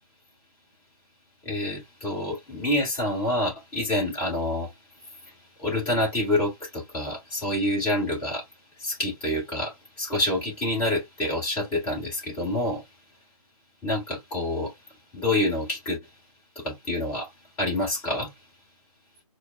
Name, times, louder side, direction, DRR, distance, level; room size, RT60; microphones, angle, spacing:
voice 1, 1.4-4.7 5.0-8.5 8.8-12.8 13.8-14.8 15.1-16.0 16.5-17.3 17.6-18.3, left 1 dB, 10° left, 1.7 m, -27 dB
4.4 x 2.3 x 2.3 m
figure-of-eight pair, 155°, 20 cm